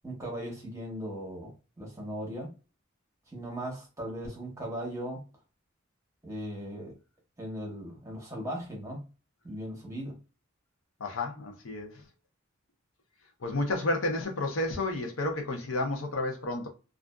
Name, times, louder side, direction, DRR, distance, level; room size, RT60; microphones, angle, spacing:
voice 1, 0.0-2.5 3.3-5.2 6.2-6.9 7.4-9.0 9.4-10.2, equal, 15° right, 0.9 m, -38 dB
voice 2, 11.0-12.0 13.4-16.7, left 2 dB, 70° left, 0.6 m, -31 dB
2.4 x 2.4 x 2.2 m
head